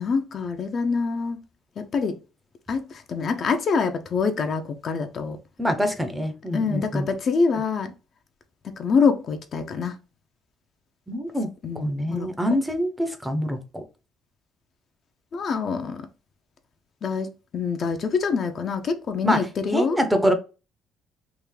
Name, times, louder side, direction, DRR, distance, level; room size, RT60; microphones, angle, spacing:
voice 1, 0.0-1.4 1.8-2.2 2.7-5.4 6.5-7.9 8.6-10.0 11.6-12.3 15.3-16.1 17.0-20.0, left 5 dB, 40° left, 0.5 m, -25 dB
voice 2, 5.6-7.1 11.1-11.5 11.8-13.8 19.3-19.4 19.7-20.3, equal, 5° right, 0.6 m, -25 dB
3.5 x 2.4 x 3.1 m
cardioid pair, 140°, 0 cm